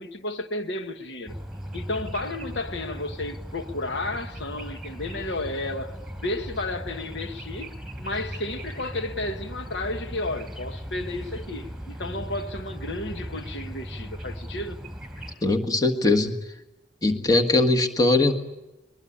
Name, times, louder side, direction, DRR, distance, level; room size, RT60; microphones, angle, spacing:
voice 1, 0.0-1.4 1.7-14.8, left 2 dB, 65° left, 1.3 m, -32 dB
sound 1, 1.3-15.3, equal, 5° right, 4.2 m, -38 dB
voice 2, 15.4-16.3 17.0-18.3, left 2 dB, 20° left, 1.6 m, -20 dB
22.5 x 22.0 x 10.0 m
head